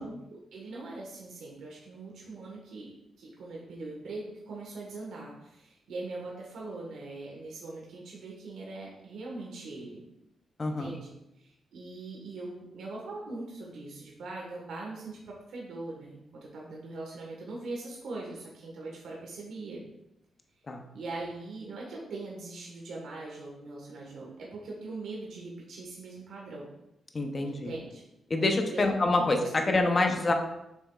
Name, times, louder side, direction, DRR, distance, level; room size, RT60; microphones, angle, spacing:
voice 1, 0.0-2.9 3.2-10.0 10.7-19.8 20.9-26.7 27.4-28.0 28.7-29.3 29.6-30.2, right 2 dB, 75° right, -3 dB, 1.4 m, -41 dB
voice 2, 10.6-11.0 20.7-20.8 27.1-27.7 28.3-30.3, left 2 dB, 25° left, 4 dB, 0.7 m, -26 dB
7.1 x 5.7 x 2.4 m, 0.86 s
wide cardioid pair, 180°, 0 cm